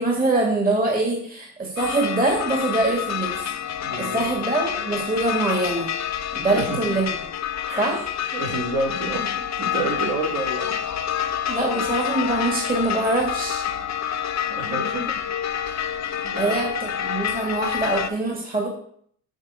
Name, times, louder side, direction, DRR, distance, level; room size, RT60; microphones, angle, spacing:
voice 1, 0.0-5.9 6.3-7.1 7.8-8.1 11.5-13.6 16.4-18.7, right 2 dB, 20° right, -1 dB, 2.9 m, -24 dB
sound 1, 1.8-18.1, left 9 dB, 40° left, 1.0 m, -28 dB
voice 2, 3.8-4.3 6.5-6.8 7.6-7.9 8.3-10.8 13.8-13.9 14.4-15.2 15.6-15.7 16.2-16.5, right 2 dB, 45° right, -2 dB, 3.8 m, -29 dB
7.3 x 6.6 x 6.9 m, 0.64 s
supercardioid pair, 90°, 44 cm